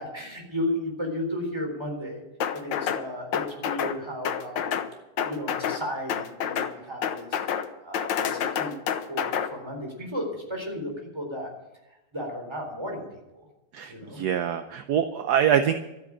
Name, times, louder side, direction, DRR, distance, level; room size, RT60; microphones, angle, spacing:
voice 1, 0.0-2.2 2.5-4.8 5.2-8.7 9.1-11.5 12.1-13.0 13.3-13.5 13.9-14.2, left 1 dB, 15° right, 1 dB, 3.9 m, -34 dB
sound 1, 2.4-3.0 3.3-4.0 4.2-4.9 5.2-5.8 6.1-6.7 7.0-7.7 7.9-9.5, left 8 dB, 85° left, 1.7 m, -28 dB
voice 2, 13.7-15.8, right 9 dB, 70° right, 9 dB, 1.2 m, -24 dB
13.0 x 9.7 x 8.8 m, 0.97 s
omnidirectional pair, 2.0 m